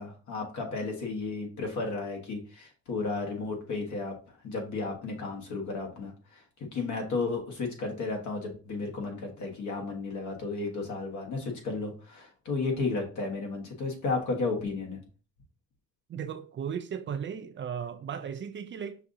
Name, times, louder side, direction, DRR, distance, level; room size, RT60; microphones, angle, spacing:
voice 1, 0.0-4.2 4.4-15.0, left 3 dB, 75° left, 1.4 m, -33 dB
voice 2, 16.1-19.0, right 7 dB, 40° right, 0.4 m, -36 dB
5.7 x 2.5 x 2.6 m
cardioid pair, 90°, 30 cm